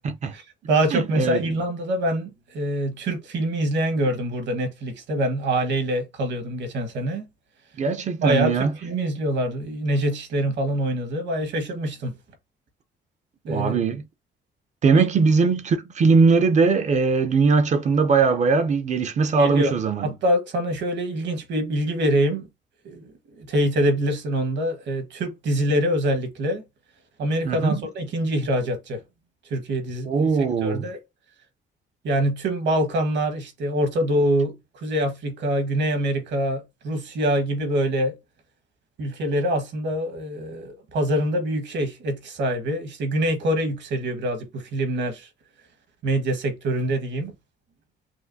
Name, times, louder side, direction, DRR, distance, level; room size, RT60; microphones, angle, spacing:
voice 1, 0.3-7.3 8.2-12.1 13.5-13.8 14.9-15.0 19.4-19.7 20.0-22.5 22.8-26.6 27.2-29.0 29.5-30.3 30.6-31.0 32.0-38.2 39.0-45.3 46.0-47.3, right 1 dB, 65° right, 1.4 m, -25 dB
voice 2, 0.9-1.4 7.8-8.7 13.5-14.0 14.8-20.1 27.4-27.8 30.1-30.9, right 4 dB, 35° right, 0.5 m, -20 dB
6.2 x 2.5 x 2.6 m
cardioid pair, 150°, 20 cm